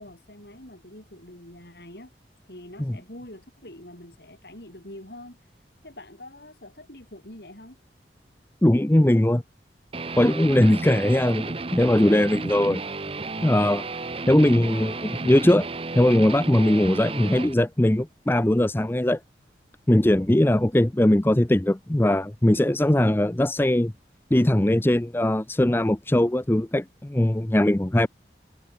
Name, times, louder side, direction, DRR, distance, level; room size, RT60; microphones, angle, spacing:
voice 1, 0.0-2.1 2.5-5.4 5.8-7.8, left 1 dB, 65° left, 6.1 m, -44 dB
voice 2, 8.6-9.4 10.2-12.8 13.4-13.9 14.3-15.7 15.9-19.2 19.9-23.9 24.3-28.1, left 1 dB, 10° left, 0.5 m, -20 dB
Guitar, 9.9-17.5, right 3 dB, 30° right, 0.8 m, -33 dB
head